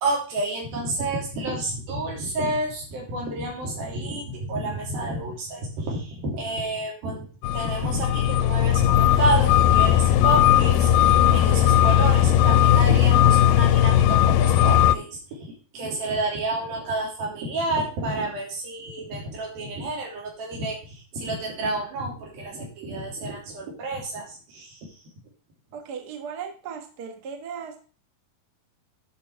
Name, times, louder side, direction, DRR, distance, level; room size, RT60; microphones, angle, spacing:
voice 1, 0.0-7.3 7.5-15.5 15.7-24.9, right 2 dB, 85° right, -1 dB, 4.8 m, -30 dB
sound 1, 7.4-15.0, left 11 dB, 85° left, 2.2 m, -18 dB
voice 2, 25.7-27.9, right 6 dB, 60° right, 5 dB, 1.0 m, -37 dB
10.5 x 5.3 x 4.7 m, 0.38 s
omnidirectional pair, 4.1 m